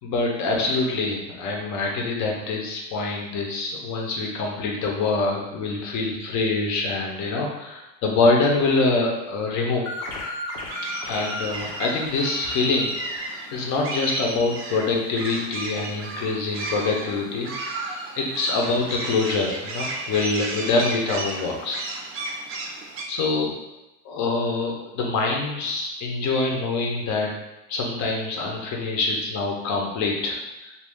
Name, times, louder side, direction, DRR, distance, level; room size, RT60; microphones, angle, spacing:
voice 1, 0.0-9.9 11.0-17.7 18.2-21.8 23.1-23.6 24.0-27.3 27.7-30.7, left 3 dB, 45° left, 0 dB, 0.8 m, -25 dB
sound 1, 9.8-14.2, left 2 dB, 80° left, 0.9 m, -36 dB
sound 2, 10.7-23.0, right 2 dB, 35° right, 0.5 m, -34 dB
2.6 x 2.5 x 3.5 m, 0.99 s
supercardioid pair, 115°, 40 cm